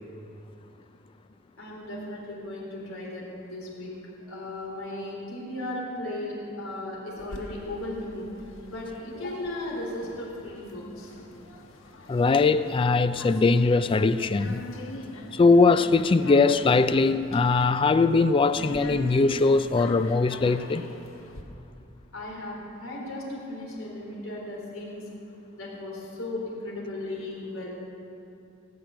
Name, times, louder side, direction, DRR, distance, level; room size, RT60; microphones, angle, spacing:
voice 1, 1.6-3.9 4.3-8.3 8.7-11.1 22.1-25.0 25.6-27.7, left 1 dB, 90° left, 3.7 m, -36 dB
sound 1, 7.2-21.4, left 2 dB, 75° left, 1.2 m, -43 dB
voice 2, 12.1-14.7 15.3-20.8, left 3 dB, 25° left, 0.3 m, -21 dB
16.5 x 6.0 x 9.2 m
head